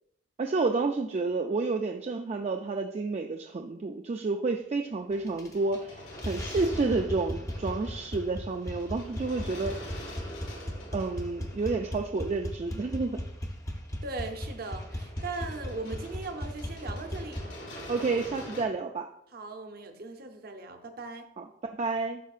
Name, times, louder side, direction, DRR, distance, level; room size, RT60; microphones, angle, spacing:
voice 1, 0.4-9.8 10.9-13.2 17.9-19.1 21.4-22.2, right 3 dB, 35° right, 4 dB, 0.3 m, -30 dB
sound 1, 4.9-12.8 14.2-18.6, equal, 80° left, 2.2 m, -45 dB
sound 2, 5.3-5.8 6.1-17.4, equal, 15° left, 0.7 m, -37 dB
voice 2, 14.0-17.4 19.3-21.3, right 3 dB, 50° right, 6 dB, 0.7 m, -39 dB
11.5 x 4.6 x 2.4 m, 0.78 s
head